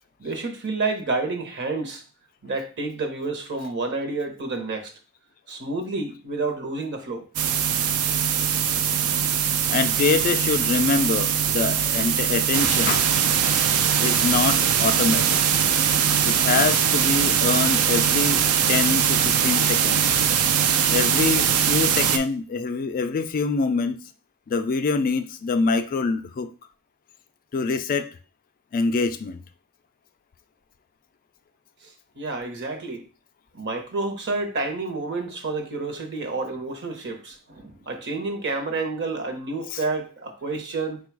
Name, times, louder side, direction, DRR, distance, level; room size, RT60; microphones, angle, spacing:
voice 1, 0.2-2.0 2.4-4.9 5.5-7.2 31.8-33.1 33.5-41.0, right 3 dB, 50° right, 5 dB, 0.9 m, -29 dB
sound 1, 7.4-22.2, right 8 dB, 75° right, 0.4 m, -21 dB
voice 2, 9.7-13.0 14.0-15.4 16.2-20.2 20.9-24.0 24.5-26.5 27.5-28.1 28.7-29.4 39.7-39.8, left 4 dB, 40° left, 8 dB, 0.3 m, -25 dB
4.5 x 2.3 x 4.6 m, 0.36 s
head